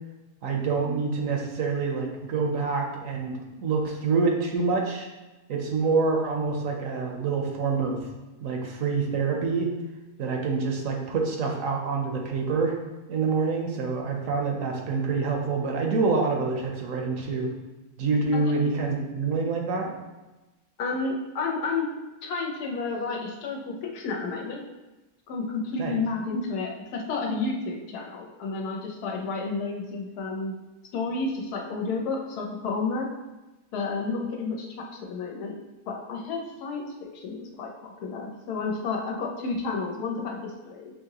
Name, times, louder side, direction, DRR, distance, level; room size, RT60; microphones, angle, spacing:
voice 1, 0.4-5.1 5.5-8.0 8.4-9.7 10.2-12.7 13.1-17.5 18.0-19.9 25.8-25.9, right 4 dB, 65° right, 1 dB, 1.0 m, -26 dB
voice 2, 20.8-21.9 22.2-24.6 25.3-30.5 30.9-33.1 33.7-35.6 35.9-37.7 38.0-40.9, left 4 dB, 90° left, 0 dB, 1.3 m, -31 dB
6.3 x 2.8 x 2.8 m, 1.1 s
omnidirectional pair, 1.6 m